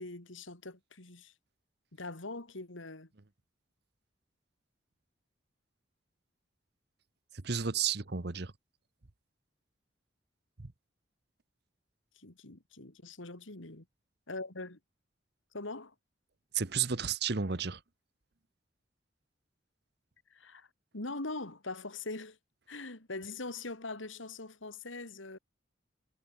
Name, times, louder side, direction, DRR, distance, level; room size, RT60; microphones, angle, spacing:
voice 1, 0.0-1.3 1.9-3.1 12.2-13.8 14.3-14.8 15.5-15.9 20.3-20.7 20.9-22.4 22.7-25.4, left 2 dB, 90° left, 2.9 m, -42 dB
voice 2, 7.4-8.5 10.6-10.7 16.5-17.8, right 6 dB, 55° right, 1.1 m, -32 dB
head